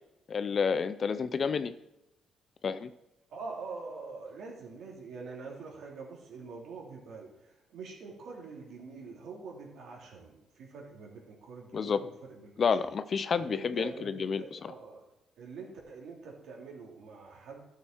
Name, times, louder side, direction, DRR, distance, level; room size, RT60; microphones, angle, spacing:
voice 1, 0.3-1.7 2.6-2.9 11.7-12.0 12.6-14.7, left 6 dB, 50° left, 13 dB, 0.6 m, -30 dB
voice 2, 3.3-12.5 13.4-15.0 15.4-17.6, right 4 dB, 75° right, -1 dB, 3.0 m, -45 dB
12.5 x 6.6 x 4.6 m, 0.92 s
cardioid pair, 90°, 0 cm